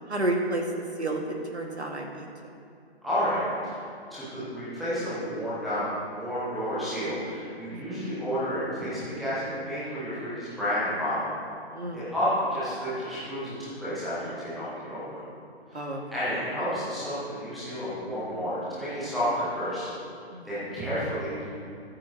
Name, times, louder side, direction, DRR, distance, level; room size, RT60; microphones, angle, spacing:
voice 1, 0.1-0.6 1.0-1.2 1.5-2.3 7.7-8.1 11.7-12.0 15.7-16.0 20.3-20.8, right 2 dB, 85° right, 1 dB, 2.0 m, -31 dB
voice 2, 3.0-3.8 4.1-11.3 11.9-15.2 15.7-19.9 20.4-21.5, equal, ahead, -13 dB, 0.4 m, -31 dB
20.0 x 8.7 x 3.0 m, 2.4 s
figure-of-eight pair, 145°, 33 cm